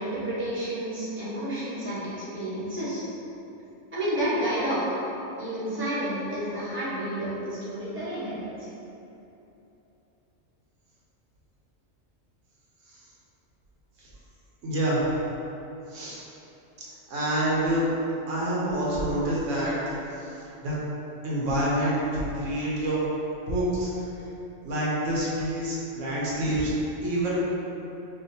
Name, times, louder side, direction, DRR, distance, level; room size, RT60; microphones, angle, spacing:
voice 1, 0.0-3.0 3.9-4.8 5.4-8.7, right 1 dB, 10° right, -11 dB, 1.0 m, -30 dB
voice 2, 14.6-15.1 15.9-16.2 17.1-17.9 18.3-20.3 20.6-20.8 21.2-23.0 23.5-24.1 24.6-26.7 27.0-27.3, right 1 dB, 80° right, -6 dB, 1.1 m, -27 dB
4.7 x 2.5 x 2.6 m, 3.0 s
omnidirectional pair, 1.3 m